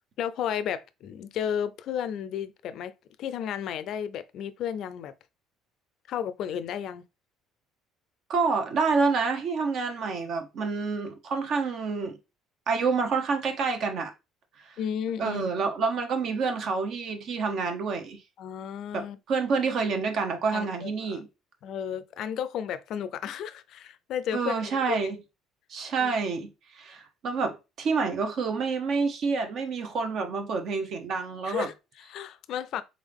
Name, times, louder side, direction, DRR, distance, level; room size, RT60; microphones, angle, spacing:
voice 1, 0.2-2.9 3.2-5.1 6.1-7.0 14.8-15.4 18.4-19.2 20.5-21.2 21.6-25.1 26.0-26.1 31.4-32.8, left 9 dB, 60° left, 0.4 m, -33 dB
voice 2, 8.3-12.2 12.7-14.1 14.6-14.7 15.2-18.2 18.9-21.3 24.3-25.2 25.7-31.7, right 4 dB, 55° right, 0.9 m, -28 dB
3.8 x 3.6 x 3.4 m
cardioid pair, 125°, 0 cm